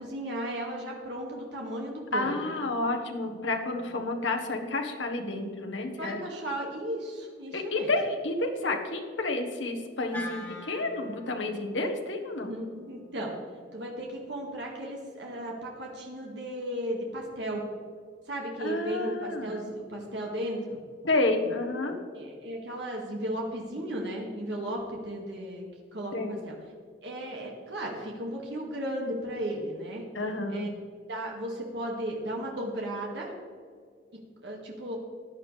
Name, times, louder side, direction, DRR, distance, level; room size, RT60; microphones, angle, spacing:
voice 1, 0.0-2.6 6.0-7.9 12.5-13.3 13.7-17.6 18.3-20.8 22.1-25.7 25.9-26.6 27.0-30.0 30.5-30.7 31.1-33.3 34.4-35.0, right 1 dB, 65° right, -1 dB, 2.0 m, -35 dB
voice 2, 2.1-6.2 7.5-12.5 18.6-19.6 21.0-22.0 26.1-26.4 30.1-30.7, left 2 dB, 80° left, 4 dB, 1.4 m, -30 dB
Wind instrument woodwind instrument, 10.1-14.4, left 1 dB, 10° left, 2.0 m, -45 dB
15.0 x 10.0 x 3.3 m, 2.1 s
head